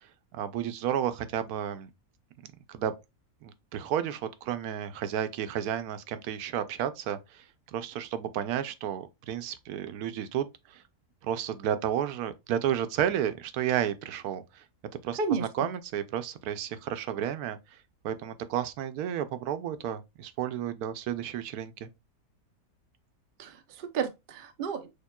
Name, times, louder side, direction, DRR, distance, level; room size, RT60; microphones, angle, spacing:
voice 1, 0.3-1.9 2.7-2.9 3.4-7.4 7.7-10.8 11.2-14.6 15.0-17.6 18.0-21.9, right 10 dB, 80° right, 1.0 m, -32 dB
voice 2, 15.2-15.7 23.4-24.9, right 5 dB, 60° right, 0.5 m, -32 dB
6.5 x 2.9 x 2.2 m
omnidirectional pair, 1.6 m